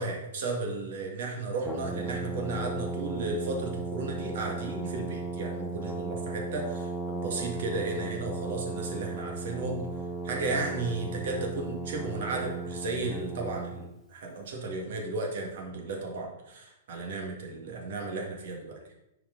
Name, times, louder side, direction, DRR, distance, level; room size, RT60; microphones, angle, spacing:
voice 1, 0.0-9.9 10.2-18.9, right 2 dB, 50° right, 1 dB, 1.9 m, -34 dB
Brass instrument, 1.6-13.9, right 3 dB, ahead, 0.6 m, -36 dB
11.0 x 4.6 x 3.9 m, 0.88 s
hypercardioid pair, 175°, 0 cm